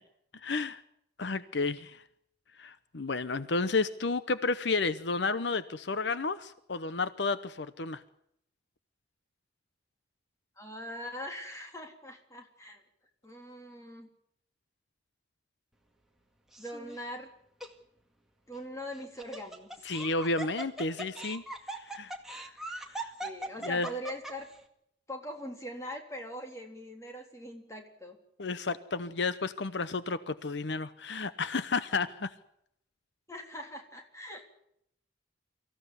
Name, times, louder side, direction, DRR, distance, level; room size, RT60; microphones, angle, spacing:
voice 1, 0.3-0.8 1.2-2.0 2.6-8.0 19.8-21.4 21.7-22.5 22.9-23.1 23.6-23.9 28.4-32.3, left 3 dB, 70° left, 14 dB, 0.8 m, -32 dB
voice 2, 10.6-12.8 13.2-14.1 16.6-17.3 18.5-19.9 23.2-24.5 25.1-28.2 33.3-34.5, equal, 15° left, 3 dB, 3.6 m, -42 dB
Laughter, 16.5-17.0 17.6-17.7 18.9-24.5, right 2 dB, ahead, 2.0 m, -40 dB
24.5 x 15.0 x 9.6 m, 0.76 s
head